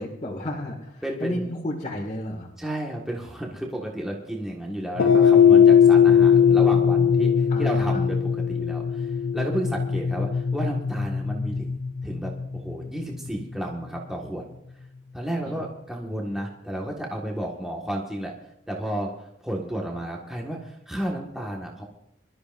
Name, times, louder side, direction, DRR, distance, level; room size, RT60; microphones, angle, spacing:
voice 1, 0.0-2.5 7.5-8.1 15.5-15.6, left 1 dB, 35° left, -3 dB, 2.0 m, -32 dB
voice 2, 1.0-1.5 2.6-9.1 9.3-14.4 15.1-18.3 18.7-21.8, right 1 dB, 5° right, -2 dB, 1.6 m, -32 dB
sound 1, 5.0-13.4, left 7 dB, 70° left, 0.5 m, -19 dB
24.0 x 13.0 x 2.6 m, 0.79 s
head